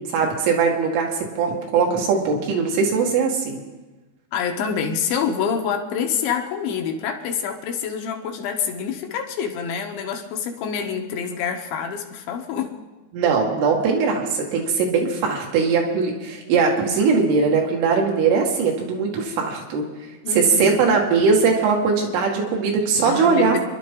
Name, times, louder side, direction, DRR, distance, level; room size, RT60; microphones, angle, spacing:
voice 1, 0.1-3.6 13.1-19.8 20.3-23.6, right 5 dB, 80° right, 0 dB, 4.3 m, -20 dB
voice 2, 4.3-12.7 20.2-21.0 23.0-23.6, left 7 dB, 75° left, 3 dB, 3.2 m, -26 dB
28.5 x 11.5 x 3.8 m, 1.2 s
omnidirectional pair, 5.6 m